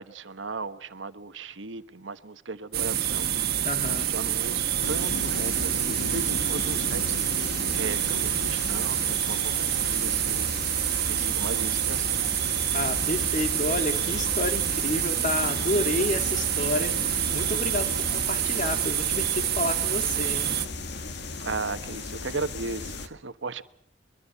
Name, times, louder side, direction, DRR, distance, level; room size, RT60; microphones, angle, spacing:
voice 1, 0.0-3.3 3.9-7.2 7.7-10.6 11.1-12.2 21.4-23.6, right 3 dB, 85° right, 1.3 m, -36 dB
sound 1, 2.7-20.7, right 11 dB, 60° right, 1.6 m, -27 dB
voice 2, 3.6-4.1 12.7-20.5, left 2 dB, 45° left, 2.1 m, -30 dB
sound 2, 4.8-23.1, left 3 dB, 65° left, 1.9 m, -36 dB
24.0 x 22.5 x 7.0 m
head